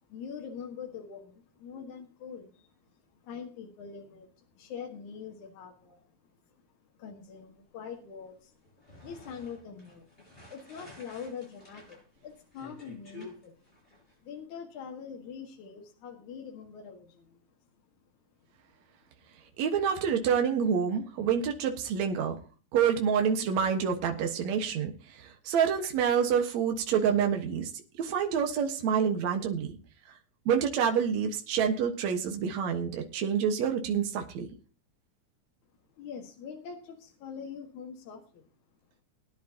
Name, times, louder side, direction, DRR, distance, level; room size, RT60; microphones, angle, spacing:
voice 1, 0.1-2.7 3.1-6.2 6.5-6.6 7.0-8.6 9.0-10.1 10.5-13.6 13.9-17.4 18.0-18.1 36.0-38.5, left 6 dB, 70° left, 1 dB, 3.1 m, -44 dB
sound 1, 8.6-14.1, left 2 dB, 15° left, 7.2 m, -52 dB
voice 2, 19.6-22.4 22.7-27.7 28.0-29.8 30.5-34.5, right 7 dB, 65° right, 4 dB, 2.6 m, -27 dB
20.5 x 10.5 x 2.9 m, 0.35 s
omnidirectional pair, 3.5 m